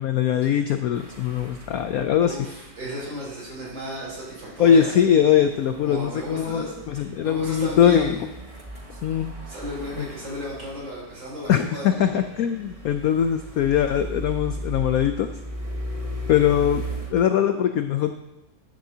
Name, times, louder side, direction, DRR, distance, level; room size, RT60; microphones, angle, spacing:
voice 1, 0.0-2.4 4.6-8.2 9.0-9.3 10.0-10.1 11.5-15.3 16.3-16.8 17.1-18.1, left 9 dB, 80° left, 8 dB, 0.8 m, -21 dB
sound 1, 0.9-17.1, equal, 25° right, 0.9 m, -37 dB
voice 2, 2.2-4.9 5.8-8.2 9.5-12.2, equal, 75° right, -5 dB, 4.8 m, -34 dB
13.0 x 10.0 x 2.8 m, 0.95 s
omnidirectional pair, 2.1 m